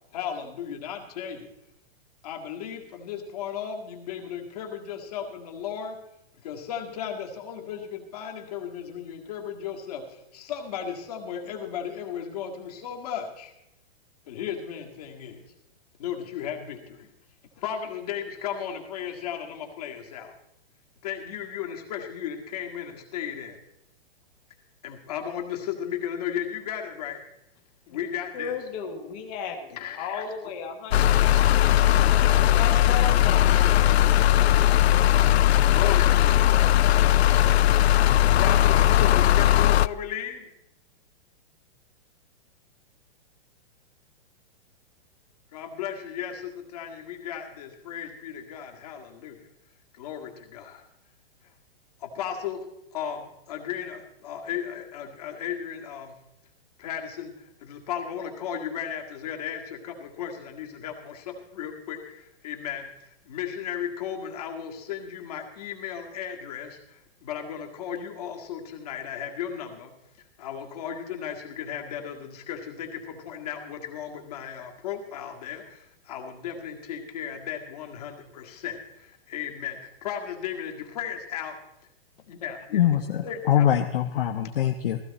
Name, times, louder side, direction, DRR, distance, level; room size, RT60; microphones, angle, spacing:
voice 1, 0.1-1.5 2.2-6.0 6.4-13.5 14.3-15.5 16.0-17.1 17.6-20.3 21.0-23.6 24.8-27.2 27.9-28.6 29.7-30.3 33.1-34.5 35.7-36.6 38.2-40.5 45.5-49.4 49.9-50.8 52.0-52.7 52.9-56.1 56.8-69.9 70.4-81.6 82.3-82.8 83.2-83.7, left 9 dB, 40° left, 2 dB, 1.9 m, -35 dB
voice 2, 28.3-31.1 31.4-31.6 32.0-33.7, left 6 dB, 10° left, 2 dB, 0.5 m, -35 dB
sound 1, 30.9-39.9, left 12 dB, 80° left, 0.5 m, -19 dB
voice 3, 82.7-85.0, left 10 dB, 60° left, 5 dB, 0.9 m, -23 dB
15.5 x 15.0 x 4.1 m, 0.83 s
hypercardioid pair, 180°, 31 cm